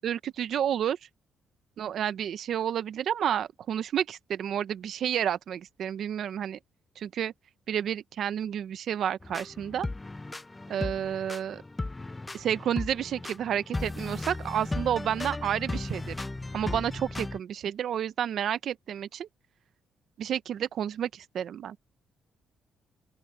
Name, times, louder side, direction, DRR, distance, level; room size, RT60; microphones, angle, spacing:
voice 1, 0.0-1.0 1.8-6.6 7.0-7.3 7.7-9.9 10.7-11.6 12.3-16.2 16.5-19.3 20.2-21.8, right 9 dB, 65° right, 0.8 m, -30 dB
sound 1, 9.2-17.4, left 2 dB, 15° left, 0.6 m, -36 dB
open air
cardioid pair, 90°, 0 cm